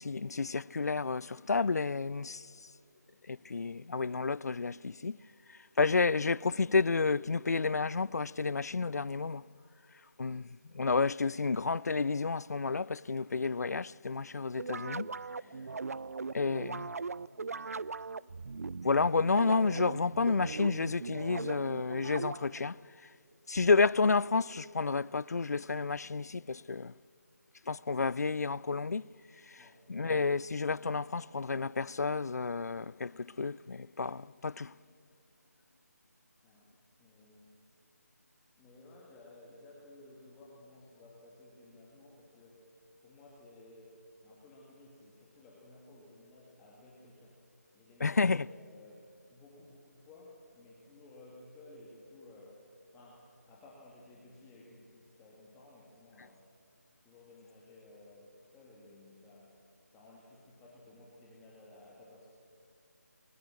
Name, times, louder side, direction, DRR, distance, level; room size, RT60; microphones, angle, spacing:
voice 1, 0.0-2.4 3.3-5.2 5.8-9.4 10.2-10.5 10.7-15.1 16.3-16.9 18.8-22.8 23.5-26.9 27.7-29.0 29.5-29.6 29.9-34.7 48.0-48.5, left 4 dB, 70° left, 0.4 m, -30 dB
sound 1, 14.6-22.7, right 4 dB, 65° right, 0.4 m, -39 dB
voice 2, 15.4-15.8 29.5-29.9 36.4-36.7 37.0-37.7 38.6-42.7 43.0-47.4 47.7-52.7 52.9-56.4 57.0-62.3, left 2 dB, 10° left, 2.1 m, -56 dB
22.0 x 21.0 x 7.6 m
figure-of-eight pair, 160°, 9 cm